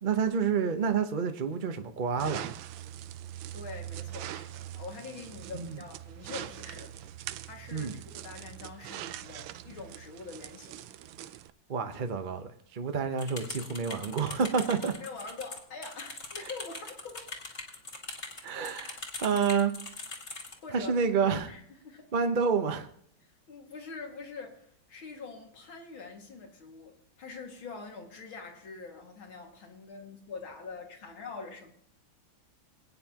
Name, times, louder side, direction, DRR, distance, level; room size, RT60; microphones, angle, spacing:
voice 1, 0.0-2.5 5.5-5.8 7.7-8.0 11.7-15.0 18.4-19.7 20.7-21.5 22.1-22.9, right 6 dB, 35° right, 0.8 m, -29 dB
sound 1, 2.2-11.5, right 12 dB, 80° right, 1.3 m, -42 dB
voice 2, 3.5-10.9 15.0-17.8 20.6-20.9 21.5-22.1 23.2-31.7, left 4 dB, 90° left, 3.0 m, -45 dB
sound 2, 13.2-20.6, left 3 dB, 35° left, 2.2 m, -42 dB
21.5 x 9.5 x 2.9 m
omnidirectional pair, 2.1 m